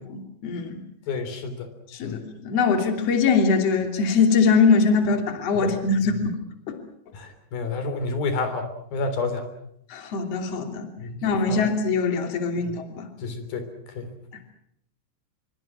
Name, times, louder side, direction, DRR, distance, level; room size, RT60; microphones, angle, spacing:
voice 1, 0.1-0.8 1.9-6.2 6.7-6.8 9.9-10.9 11.2-13.1, left 4 dB, 35° left, 5 dB, 3.4 m, -22 dB
voice 2, 1.1-1.7 2.0-2.2 5.5-5.7 7.1-9.5 11.0-11.6 12.6-12.7 13.2-13.6 14.0-14.1, left 3 dB, 55° left, 8 dB, 5.0 m, -30 dB
27.0 x 24.0 x 6.2 m, 0.73 s
omnidirectional pair, 5.5 m